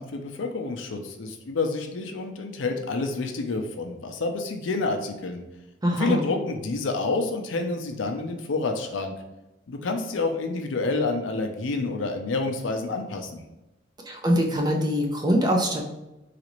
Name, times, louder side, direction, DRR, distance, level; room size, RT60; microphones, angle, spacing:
voice 1, 0.0-5.4 6.0-9.1 9.7-13.4, left 3 dB, 75° left, 4 dB, 0.5 m, -28 dB
voice 2, 5.8-6.2 14.1-15.8, equal, 20° right, 1 dB, 0.5 m, -23 dB
3.9 x 2.5 x 3.0 m, 0.95 s
head